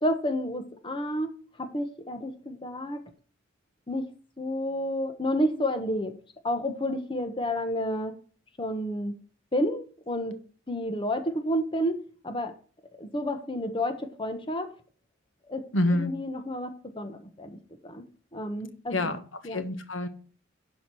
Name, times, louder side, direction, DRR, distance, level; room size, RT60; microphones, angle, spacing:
voice 1, 0.0-3.0 3.9-4.1 4.4-6.1 6.4-8.1 8.6-9.1 9.5-10.4 10.7-12.0 12.2-12.5 13.0-14.7 15.5-15.6 16.0-16.7 17.0-18.0 18.3-19.0 19.4-19.6, equal, 25° left, 8 dB, 1.2 m, -30 dB
voice 2, 15.7-16.1 18.9-20.1, left 1 dB, 70° left, 9 dB, 1.5 m, -27 dB
11.5 x 5.1 x 6.2 m, 0.41 s
head